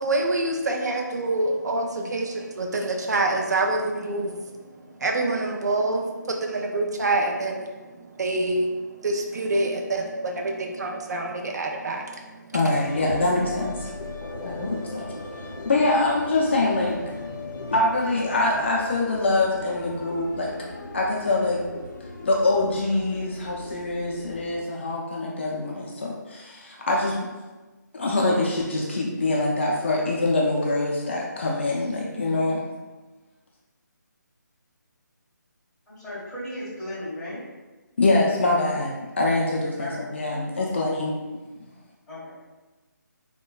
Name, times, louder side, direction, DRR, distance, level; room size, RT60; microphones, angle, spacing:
voice 1, 0.0-12.6 14.4-15.7, right 2 dB, 60° right, 2 dB, 0.4 m, -27 dB
voice 2, 12.5-13.9 14.4-15.1 15.6-17.0 17.7-20.5 20.9-21.6 22.2-27.2 27.9-32.6 38.0-41.2, left 2 dB, 35° left, -3 dB, 0.4 m, -24 dB
sound 1, 12.7-24.6, left 2 dB, 85° left, 0.7 m, -38 dB
voice 3, 35.9-37.4 39.8-40.1 42.1-42.3, left 1 dB, 10° left, -12 dB, 0.9 m, -35 dB
3.8 x 2.2 x 2.2 m, 1.2 s
figure-of-eight pair, 165°, 10 cm